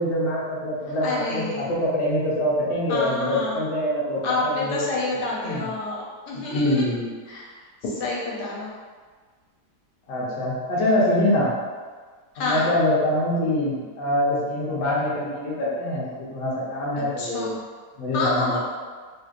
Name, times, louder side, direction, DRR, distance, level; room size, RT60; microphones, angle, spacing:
voice 1, 0.0-5.0 5.4-5.7 6.3-7.1 10.1-11.6 12.4-17.5 18.0-18.6, left 1 dB, 55° left, -7 dB, 1.0 m, -24 dB
voice 2, 1.0-1.7 2.9-3.6 4.2-6.9 7.3-7.5 7.8-8.7 10.8-11.4 12.3-12.7 17.2-17.6 18.1-18.6, left 2 dB, 80° left, -4 dB, 1.2 m, -28 dB
3.1 x 2.8 x 2.5 m, 1.5 s
omnidirectional pair, 1.8 m